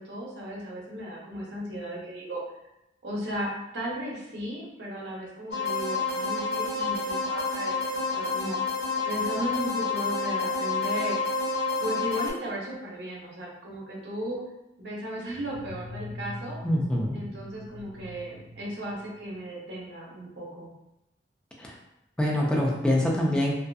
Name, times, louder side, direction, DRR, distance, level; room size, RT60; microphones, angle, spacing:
voice 1, 0.0-2.4 3.0-8.6 9.0-11.2 11.8-14.4 14.8-16.6 17.1-20.7, right 1 dB, 70° right, -4 dB, 0.7 m, -35 dB
sound 1, 5.5-12.3, left 4 dB, 70° left, 1.2 m, -29 dB
sound 2, 15.3-19.4, left 2 dB, 40° left, 1.5 m, -43 dB
voice 2, 16.6-17.2 21.6-21.7 22.2-23.5, left 1 dB, 5° left, -3 dB, 0.4 m, -25 dB
2.5 x 2.4 x 2.2 m, 0.90 s
head